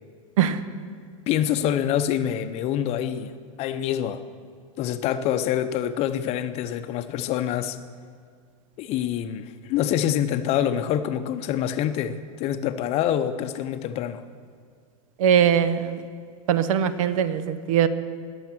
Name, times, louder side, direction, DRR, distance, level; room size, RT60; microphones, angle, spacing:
voice 1, 1.3-4.2 4.8-7.8 8.8-14.2, left 10 dB, 35° left, 11 dB, 0.7 m, -26 dB
voice 2, 15.2-16.1 16.5-17.9, right 9 dB, 70° right, 13 dB, 0.9 m, -21 dB
20.0 x 7.2 x 6.1 m, 2.1 s
supercardioid pair, 140°, 18 cm